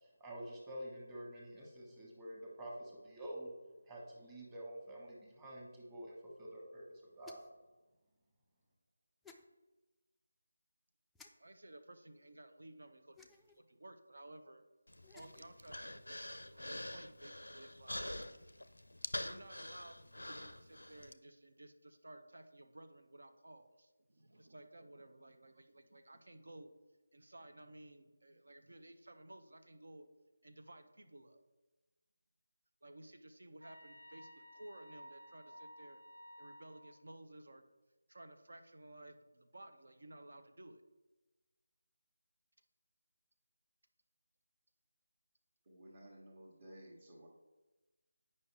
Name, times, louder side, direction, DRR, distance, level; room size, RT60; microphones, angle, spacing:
voice 1, 0.0-3.5 3.8-7.4, right 1 dB, 15° right, -4 dB, 1.4 m, -48 dB
sound 1, 7.2-7.6 9.2-9.4 11.1-11.3 13.1-13.6 14.9-15.5, left 4 dB, 5° left, 0.3 m, -59 dB
voice 2, 11.3-14.6 15.1-18.1 19.2-26.7 27.1-30.1 30.4-31.4 32.8-36.0 36.4-37.6 38.1-40.8, right 1 dB, 65° right, 7 dB, 0.7 m, -56 dB
Human voice, 14.9-21.1, left 1 dB, 80° left, 0.4 m, -46 dB
sound 2, 33.6-36.9, equal, 90° right, 1.8 m, -55 dB
voice 3, 45.6-47.3, right 1 dB, 40° right, -6 dB, 1.3 m, -55 dB
8.4 x 5.4 x 3.3 m, 1.2 s
figure-of-eight pair, 160°, 0 cm